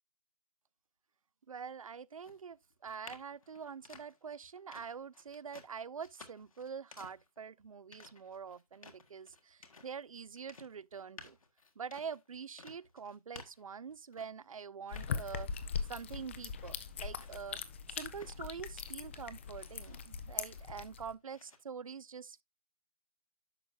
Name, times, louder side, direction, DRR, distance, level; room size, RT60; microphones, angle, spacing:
voice 1, 1.5-11.4 11.8-15.5 15.9-17.6 17.9-22.4, right 6 dB, 65° right, 0.4 m, -45 dB
sound 1, 2.2-14.5 14.9-16.1 16.5-19.1 19.4-20.9 21.3-21.6, left 4 dB, 65° left, 1.5 m, -57 dB
sound 2, 14.9-21.1, left 6 dB, 20° left, 0.5 m, -41 dB
10.5 x 6.5 x 2.5 m
figure-of-eight pair, 145°, 19 cm